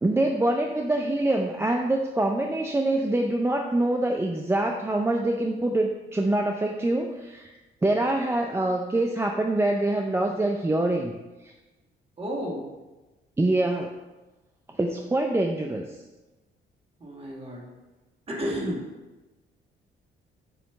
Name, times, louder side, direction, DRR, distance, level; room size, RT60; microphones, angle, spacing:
voice 1, 0.0-7.5 7.8-11.2 11.4-11.5 13.4-13.9 14.8-16.0, right 1 dB, 15° right, 2 dB, 0.5 m, -25 dB
voice 2, 12.2-12.7 17.0-17.7 18.3-18.9, equal, 30° right, -2 dB, 1.9 m, -32 dB
7.0 x 3.1 x 5.8 m, 1.1 s
cardioid pair, 90°, 20 cm